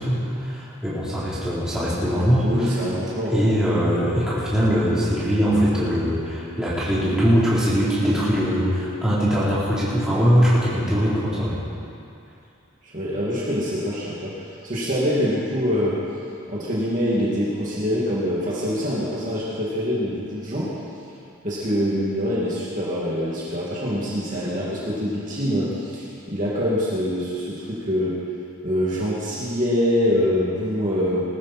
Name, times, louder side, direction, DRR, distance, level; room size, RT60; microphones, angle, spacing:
voice 1, 0.0-2.7 3.3-11.6, equal, 5° right, -10 dB, 3.9 m, -21 dB
voice 2, 2.4-3.4 12.8-16.0 16.5-20.7 21.4-28.2 28.6-31.2, equal, 40° right, -8 dB, 2.6 m, -24 dB
20.0 x 13.5 x 4.5 m, 2.6 s
head